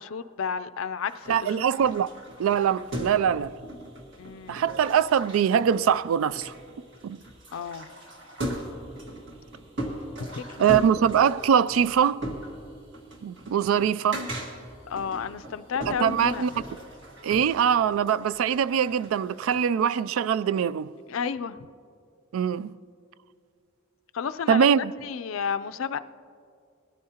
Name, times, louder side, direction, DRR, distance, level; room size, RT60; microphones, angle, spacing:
voice 1, 0.0-1.6 4.2-4.7 7.5-7.9 10.3-10.7 14.9-16.5 21.1-21.7 24.1-26.0, left 6 dB, 75° left, 0.4 m, -32 dB
sound 1, 1.1-19.7, right 1 dB, 60° right, 1.7 m, -39 dB
voice 2, 1.3-2.1 2.4-3.5 4.5-6.5 7.0-7.2 10.6-12.2 13.2-14.2 15.9-16.5 17.2-20.9 22.3-22.7 24.5-24.9, right 8 dB, 85° right, 0.3 m, -23 dB
20.5 x 13.5 x 2.8 m
head